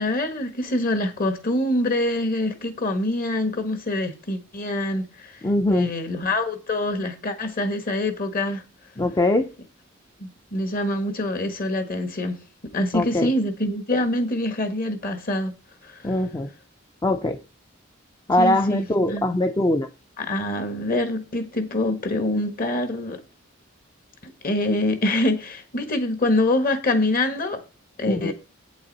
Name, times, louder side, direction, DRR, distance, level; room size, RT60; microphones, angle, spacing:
voice 1, 0.0-5.3 5.7-8.6 10.2-12.4 12.7-15.5 15.8-16.0 18.4-19.3 20.2-23.2 24.2-27.6 28.0-28.3, left 1 dB, 45° left, 1.5 m, -25 dB
voice 2, 5.4-5.9 9.0-9.5 12.9-13.3 16.0-16.5 17.0-17.4 18.3-19.9 28.1-28.3, left 1 dB, 20° left, 0.5 m, -22 dB
8.5 x 8.0 x 4.1 m
head